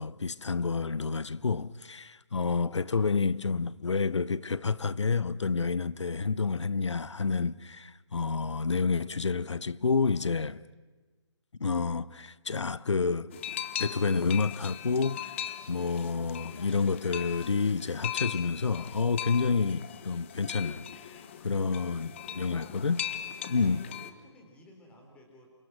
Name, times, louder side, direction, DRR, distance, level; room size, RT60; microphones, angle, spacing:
voice 1, 0.0-10.6 11.6-13.3 13.8-15.3 15.7-20.9 21.4-23.0 23.5-23.8, left 4 dB, 75° left, 0.8 m, -29 dB
sound 1, 13.3-24.1, left 10 dB, 25° left, 1.1 m, -39 dB
voice 2, 21.5-22.9 23.2-25.5, equal, 10° left, 3.8 m, -56 dB
29.0 x 26.5 x 6.2 m
figure-of-eight pair, 155°, 15 cm